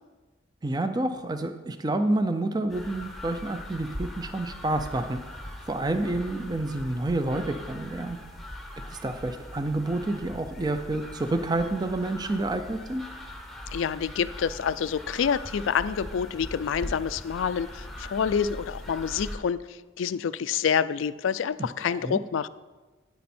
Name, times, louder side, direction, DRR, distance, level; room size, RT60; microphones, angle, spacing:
voice 1, 0.6-5.2 5.7-8.2 8.9-13.0 21.6-22.2, right 2 dB, 20° right, 9 dB, 0.4 m, -29 dB
sound 1, 2.7-19.4, left 1 dB, ahead, 0.8 m, -41 dB
voice 2, 13.7-22.5, left 7 dB, 75° left, 15 dB, 0.3 m, -27 dB
9.5 x 9.2 x 4.3 m, 1.2 s
head